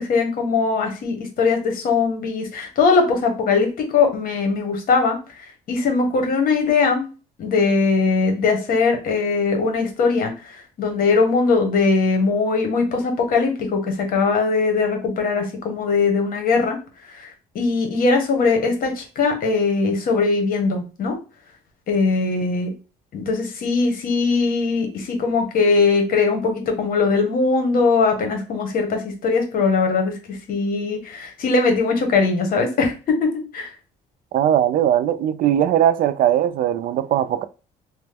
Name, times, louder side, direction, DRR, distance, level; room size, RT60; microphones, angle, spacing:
voice 1, 0.0-5.2 5.7-7.0 7.4-16.8 17.1-21.1 21.9-22.7 23.1-32.9 33.2-33.7, left 4 dB, 60° left, 1.1 m, -20 dB
voice 2, 34.3-37.4, right 11 dB, 55° right, 0.4 m, -19 dB
2.9 x 2.1 x 3.4 m
cardioid pair, 110°, 17 cm